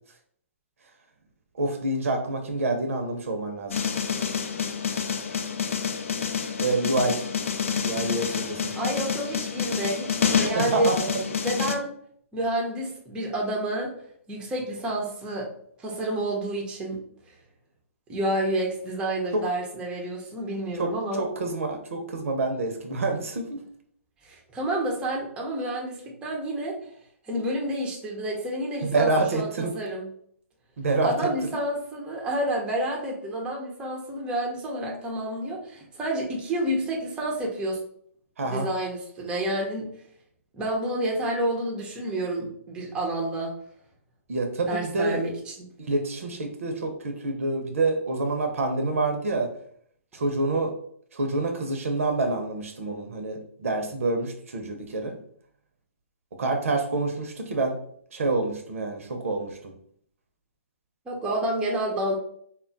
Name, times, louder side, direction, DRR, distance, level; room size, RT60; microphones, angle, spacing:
voice 1, 1.6-3.8 6.6-7.2 7.8-8.7 10.6-11.2 19.3-19.4 20.8-20.9 21.2-23.6 28.8-29.8 30.8-31.3 38.4-38.7 44.3-45.2 45.8-49.5 50.1-50.7 51.1-55.2 56.4-57.7 58.1-59.7, right 2 dB, 70° right, 4 dB, 0.7 m, -27 dB
sound 1, 3.7-11.8, left 6 dB, 70° left, 0.4 m, -28 dB
voice 2, 8.8-10.9 11.4-11.9 12.3-13.9 14.3-15.5 15.8-17.0 17.3-17.4 18.1-21.2 24.2-26.8 27.3-30.1 31.0-37.8 38.5-39.9 40.5-43.5 44.6-45.5 61.1-62.2, right 1 dB, 15° right, -2 dB, 0.6 m, -29 dB
2.2 x 2.0 x 3.8 m, 0.63 s
hypercardioid pair, 140°, 8 cm